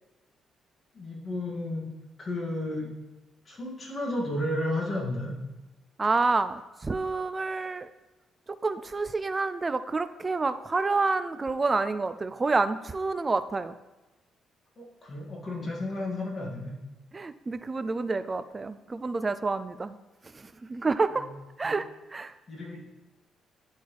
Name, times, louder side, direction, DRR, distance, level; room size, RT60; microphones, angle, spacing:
voice 1, 0.9-1.9 2.2-2.9 3.5-5.4 14.8-16.7 21.1-21.4 21.6-21.7 22.5-22.9, left 1 dB, 35° left, -3 dB, 2.4 m, -33 dB
voice 2, 6.0-7.9 8.6-13.7 17.1-20.0 20.3-21.2 21.6-22.3, right 3 dB, 30° right, 12 dB, 0.3 m, -28 dB
11.5 x 4.1 x 3.4 m, 1.1 s
cardioid pair, 90°, 0 cm